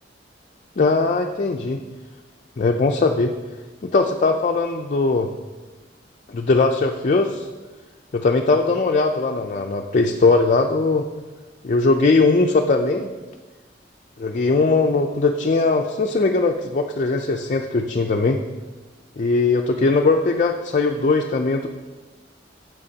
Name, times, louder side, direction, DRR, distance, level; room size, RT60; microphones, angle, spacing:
voice 1, 0.8-1.8 2.6-3.3 3.8-5.3 6.3-7.5 8.1-11.1 11.6-13.1 14.2-18.4 19.2-21.7, left 3 dB, 45° left, 3 dB, 0.4 m, -20 dB
13.0 x 7.6 x 2.8 m, 1.3 s
head